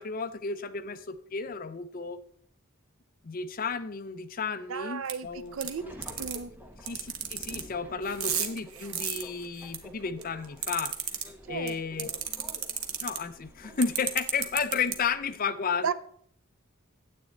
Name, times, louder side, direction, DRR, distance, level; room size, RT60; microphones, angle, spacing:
voice 1, 0.0-2.2 3.2-5.6 6.8-10.9 11.5-12.1 13.0-15.9, left 5 dB, 40° left, 0.5 m, -33 dB
voice 2, 4.7-5.8 6.2-6.5 11.5-12.1 15.8-15.9, right 6 dB, 70° right, 0.5 m, -34 dB
sound 1, 5.1-5.2 5.6-5.7 6.0-6.4 6.9-7.6 8.0-9.8 10.2-11.2 11.7-11.8 12.0-13.2 13.8-14.9, right 9 dB, 90° right, 1.2 m, -31 dB
Subway metro underground, 5.2-15.3, equal, 10° right, 1.0 m, -50 dB
9.6 x 8.2 x 3.9 m
head